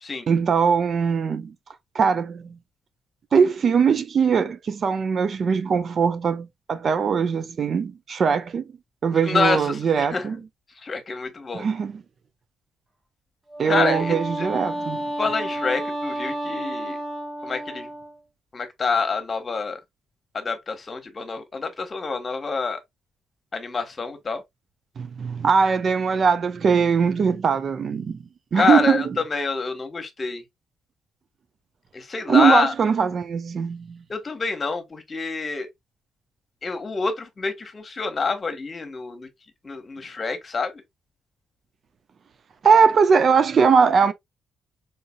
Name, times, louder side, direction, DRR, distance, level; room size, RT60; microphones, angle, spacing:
voice 1, 0.3-1.5 1.9-2.6 3.3-8.6 9.0-10.4 11.5-12.0 13.6-15.1 25.0-28.2 28.5-29.0 32.3-34.0 42.6-44.1, right 6 dB, 50° right, 0.5 m, -21 dB
voice 2, 9.1-10.3 10.8-11.6 13.6-14.5 15.2-17.0 17.4-17.9 18.5-19.8 20.3-22.8 23.5-24.4 28.5-30.4 31.9-32.7 34.1-35.7 36.6-39.3 39.6-40.8, left 4 dB, 40° left, 1.2 m, -27 dB
Wind instrument woodwind instrument, 13.5-18.2, right 1 dB, 35° right, 1.7 m, -31 dB
3.9 x 3.8 x 2.2 m
hypercardioid pair, 40°, 0 cm